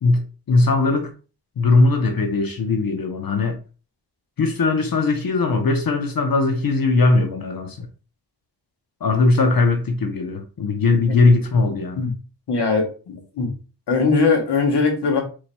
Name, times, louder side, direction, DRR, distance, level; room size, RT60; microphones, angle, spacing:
voice 1, 0.0-1.1 1.6-3.6 4.4-7.9 9.0-12.0, left 3 dB, 60° left, 0.8 m, -19 dB
voice 2, 12.5-13.5 13.9-15.2, left 4 dB, 80° left, 1.2 m, -20 dB
4.6 x 4.2 x 2.2 m
wide cardioid pair, 75°, 40 cm